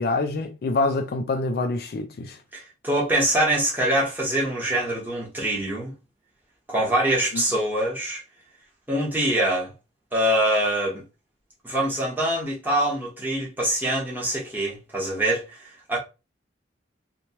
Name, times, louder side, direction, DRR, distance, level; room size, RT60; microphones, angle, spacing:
voice 1, 0.0-2.4 7.3-7.4, left 3 dB, 55° left, 0.3 m, -26 dB
voice 2, 2.5-5.9 6.7-8.2 8.9-9.7 10.1-11.0 11.6-16.0, right 1 dB, 10° right, 1.0 m, -24 dB
2.9 x 2.2 x 2.8 m
head